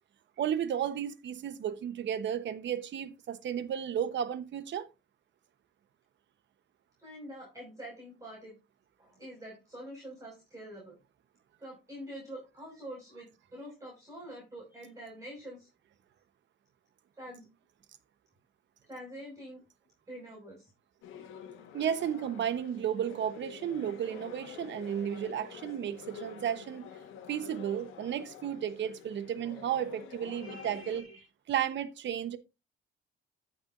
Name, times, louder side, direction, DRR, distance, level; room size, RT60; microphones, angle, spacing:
voice 1, 0.4-4.9 21.7-26.9 27.3-31.1 31.5-32.4, right 9 dB, 65° right, 1.0 m, -33 dB
voice 2, 7.0-8.6 9.0-11.0 11.6-15.7 17.2-17.5 18.9-19.6 20.1-20.7 30.3-31.2, equal, 15° right, 5.8 m, -46 dB
sound 1, 21.0-31.0, left 7 dB, 90° left, 1.6 m, -48 dB
14.5 x 6.0 x 2.6 m
cardioid pair, 90°, 20 cm